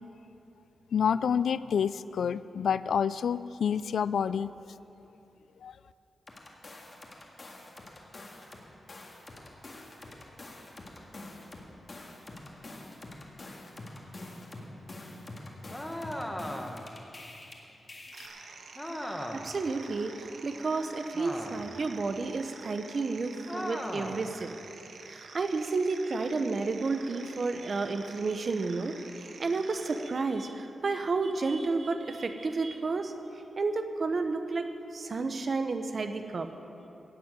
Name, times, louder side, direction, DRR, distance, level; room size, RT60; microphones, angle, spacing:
voice 1, 0.9-4.5 5.6-5.7, left 7 dB, 75° left, 16 dB, 0.3 m, -28 dB
sound 1, 6.3-8.6 8.9-17.5 17.9-18.3, left 2 dB, 30° left, 1.9 m, -45 dB
sound 2, 15.7-16.9 18.8-19.6 21.1-21.8 23.5-24.3, equal, 5° left, 1.0 m, -37 dB
sound 3, 18.1-30.1, right 4 dB, 70° right, 1.2 m, -48 dB
voice 2, 19.3-24.5 25.1-33.1 33.6-36.5, right 3 dB, 40° right, 8 dB, 0.9 m, -31 dB
16.5 x 7.6 x 9.3 m, 3.0 s
wide cardioid pair, 175°, 0 cm